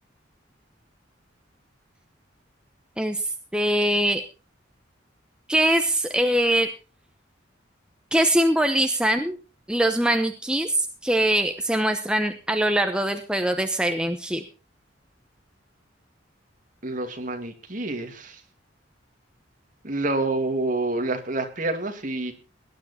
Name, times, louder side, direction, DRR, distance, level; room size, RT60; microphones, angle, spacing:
voice 1, 3.5-4.2 5.5-6.7 8.1-9.4 9.7-14.4, right 1 dB, 5° right, 6 dB, 0.9 m, -22 dB
voice 2, 16.8-18.4 19.8-22.3, right 2 dB, 45° right, 5 dB, 2.3 m, -28 dB
18.0 x 10.5 x 4.3 m, 0.33 s
head